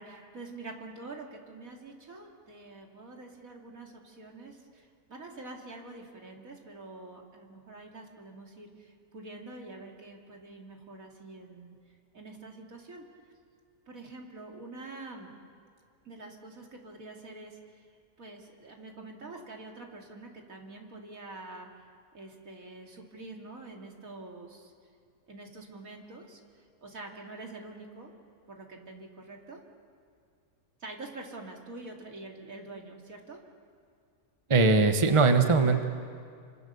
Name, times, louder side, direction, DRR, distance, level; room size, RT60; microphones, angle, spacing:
voice 1, 0.0-11.7 12.1-13.0 13.9-15.3 16.0-17.9 18.2-21.9 22.1-24.7 25.3-28.1 28.5-29.6 30.8-33.4, right 2 dB, 65° right, 1 dB, 3.2 m, -46 dB
voice 2, 34.5-35.8, right 3 dB, 20° right, 6 dB, 1.1 m, -21 dB
28.0 x 25.5 x 7.0 m, 2.3 s
omnidirectional pair, 1.6 m